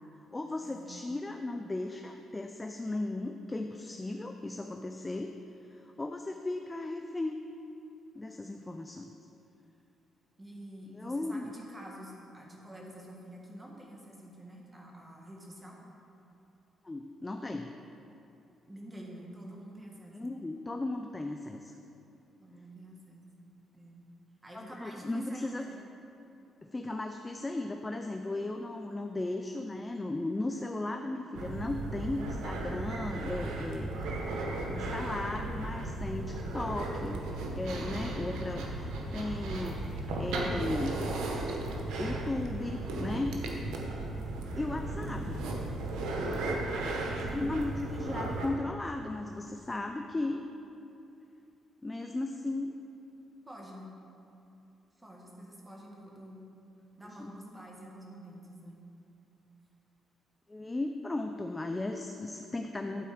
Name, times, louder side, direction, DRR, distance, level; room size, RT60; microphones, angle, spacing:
voice 1, 0.3-5.3 5.7-7.4 8.1-9.1 10.9-11.5 16.8-17.7 20.1-21.8 24.5-25.6 26.6-34.1 34.7-37.2 37.5-41.1 42.0-43.4 44.6-45.5 47.3-50.4 51.8-52.7 57.2-57.4 60.5-63.0, left 2 dB, 20° left, 5 dB, 0.4 m, -36 dB
voice 2, 10.4-15.8 18.6-20.2 22.4-23.3 23.7-24.0 24.4-25.8 43.4-43.7 47.1-47.5 53.5-53.9 55.0-56.4 57.0-58.8, right 1 dB, 15° right, -2 dB, 1.6 m, -48 dB
sound 1, 31.3-48.5, right 2 dB, 85° right, 1.0 m, -35 dB
11.5 x 4.3 x 5.0 m, 2.7 s
cardioid pair, 90°, 0 cm